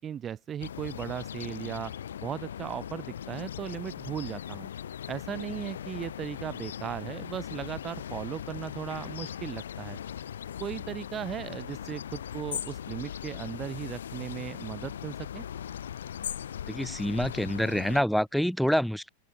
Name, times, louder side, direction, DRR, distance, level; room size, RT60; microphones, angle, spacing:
voice 1, 0.0-4.7 5.1-10.0 10.6-15.4, right 9 dB, 25° right, 2.4 m, -37 dB
sound 1, 0.6-18.0, left 9 dB, 65° left, 3.5 m, -39 dB
voice 2, 16.7-19.1, equal, ahead, 3.9 m, -27 dB
open air
figure-of-eight pair, 90°, 0 cm